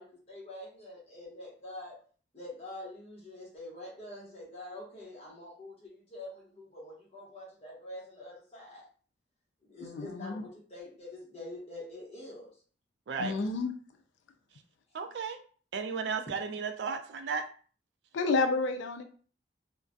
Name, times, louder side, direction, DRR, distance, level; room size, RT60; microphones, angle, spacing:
voice 1, 0.0-2.0 2.3-8.8 9.6-12.5, left 1 dB, 35° left, -5 dB, 1.0 m, -45 dB
voice 2, 9.8-10.3 13.2-13.7 18.1-19.0, left 3 dB, 80° left, 7 dB, 0.3 m, -30 dB
voice 3, 14.9-15.4 15.7-17.4, right 5 dB, 70° right, 7 dB, 0.3 m, -34 dB
2.3 x 2.2 x 2.5 m, 0.42 s
head